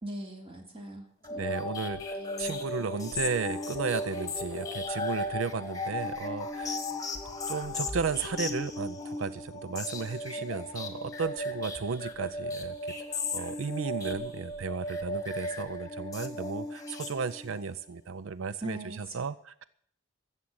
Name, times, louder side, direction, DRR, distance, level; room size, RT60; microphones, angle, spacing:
voice 1, 0.0-1.5 18.6-19.1, right 1 dB, 30° right, 1 dB, 3.2 m, -40 dB
sound 1, 1.2-17.7, left 2 dB, 20° left, 1.7 m, -36 dB
voice 2, 1.4-6.8 7.5-19.6, right 5 dB, 85° right, 15 dB, 0.5 m, -34 dB
15.0 x 7.3 x 9.5 m, 0.64 s
head